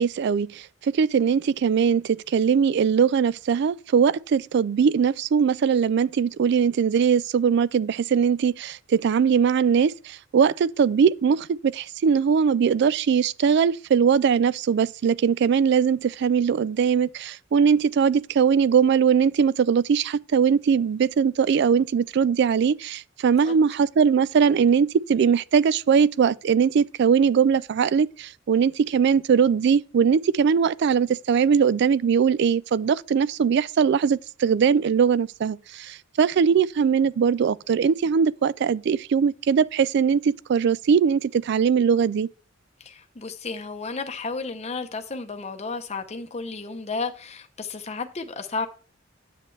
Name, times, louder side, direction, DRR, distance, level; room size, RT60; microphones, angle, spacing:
voice 1, 0.0-42.3, right 6 dB, 60° right, 0.3 m, -21 dB
voice 2, 42.8-48.7, left 4 dB, 35° left, 0.7 m, -33 dB
9.9 x 7.4 x 3.2 m
head